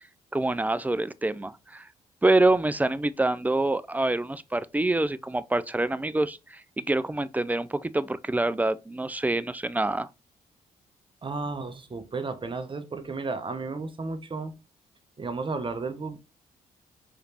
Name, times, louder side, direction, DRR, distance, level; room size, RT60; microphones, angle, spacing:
voice 1, 0.3-1.9 2.2-10.1, right 2 dB, 10° right, 0.4 m, -26 dB
voice 2, 11.2-14.5 15.2-16.2, right 3 dB, 35° right, 1.0 m, -33 dB
4.9 x 3.2 x 2.8 m
supercardioid pair, 55°, 16 cm